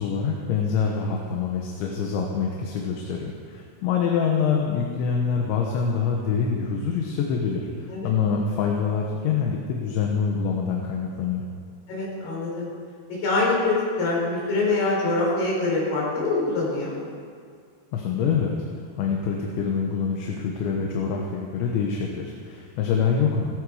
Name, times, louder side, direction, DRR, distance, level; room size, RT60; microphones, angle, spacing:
voice 1, 0.0-11.5 17.9-18.7 19.0-23.5, left 6 dB, 75° left, 0 dB, 3.4 m, -25 dB
voice 2, 11.9-12.7 13.2-17.0, left 3 dB, 45° left, -5 dB, 6.4 m, -24 dB
17.0 x 16.0 x 5.0 m, 2.1 s
omnidirectional pair, 5.6 m